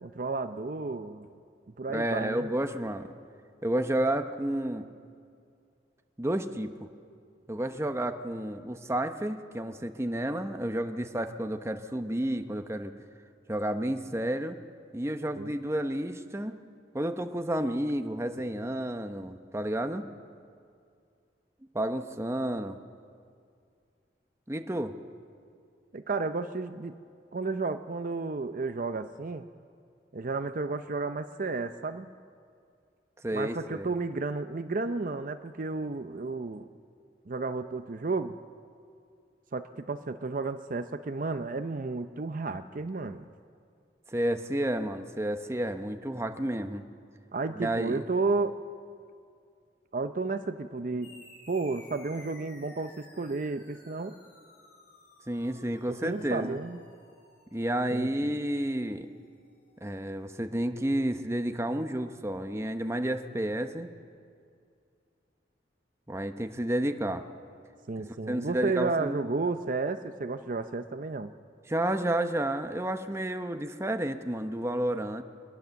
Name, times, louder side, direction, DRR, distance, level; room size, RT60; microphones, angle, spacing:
voice 1, 0.0-1.3 1.8-2.5 15.4-15.6 25.9-27.0 27.3-29.4 30.1-32.1 33.3-36.7 37.3-38.4 39.5-43.3 47.3-48.6 49.9-51.2 51.5-54.2 56.0-56.8 57.9-58.4 67.9-71.3, right 3 dB, 50° right, 9 dB, 0.6 m, -32 dB
voice 2, 1.9-3.1 3.6-4.9 6.2-6.7 7.5-13.0 13.5-14.6 14.9-16.6 16.9-20.0 21.7-22.8 24.5-24.9 33.2-33.9 44.1-46.8 47.5-48.1 55.3-56.6 57.5-59.1 59.8-63.9 66.1-67.2 68.0-69.2 71.7-75.2, right 1 dB, 15° right, 7 dB, 0.9 m, -31 dB
sound 1, 51.0-59.9, left 2 dB, 65° left, 3.7 m, -56 dB
23.5 x 21.0 x 7.0 m, 2.3 s
head